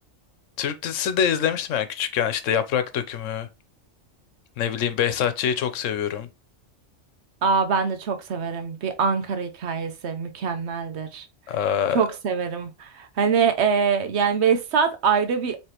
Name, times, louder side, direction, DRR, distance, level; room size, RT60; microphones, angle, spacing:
voice 1, 0.6-3.5 4.6-6.3 11.5-12.0, left 8 dB, 90° left, 1.0 m, -25 dB
voice 2, 7.4-11.2 11.9-15.6, right 6 dB, 65° right, 1.0 m, -24 dB
4.8 x 3.2 x 2.9 m
omnidirectional pair, 1.3 m